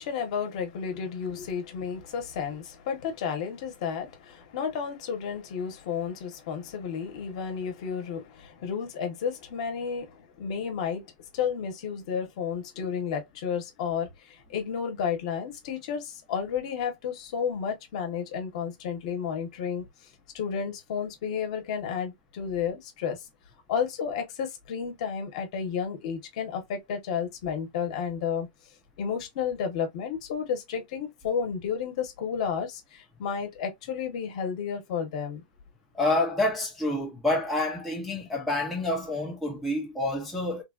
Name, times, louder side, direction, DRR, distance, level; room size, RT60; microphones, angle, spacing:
voice 1, 0.0-11.1 11.3-19.9 20.3-23.2 23.7-28.5 29.0-35.4, left 7 dB, 45° left, 0.8 m, -32 dB
voice 2, 35.9-40.6, left 2 dB, ahead, 0.4 m, -28 dB
3.1 x 2.2 x 2.3 m
supercardioid pair, 170°, 5 cm